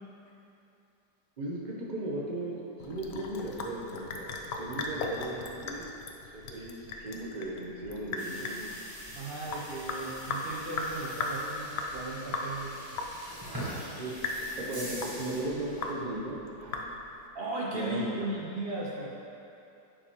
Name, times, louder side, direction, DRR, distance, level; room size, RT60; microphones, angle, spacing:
voice 1, 1.4-4.3 4.6-5.9 6.3-8.6 13.9-16.9 17.7-18.2, right 1 dB, 40° right, -3 dB, 0.7 m, -37 dB
Sink (filling or washing) / Drip, 2.8-17.3, left 3 dB, 70° left, 0.6 m, -38 dB
sound 1, 8.2-15.9, right 1 dB, 15° right, 0.9 m, -44 dB
voice 2, 9.1-12.8 17.3-19.1, right 2 dB, 80° right, -4 dB, 0.5 m, -36 dB
10.0 x 4.8 x 2.9 m, 2.8 s
omnidirectional pair, 1.8 m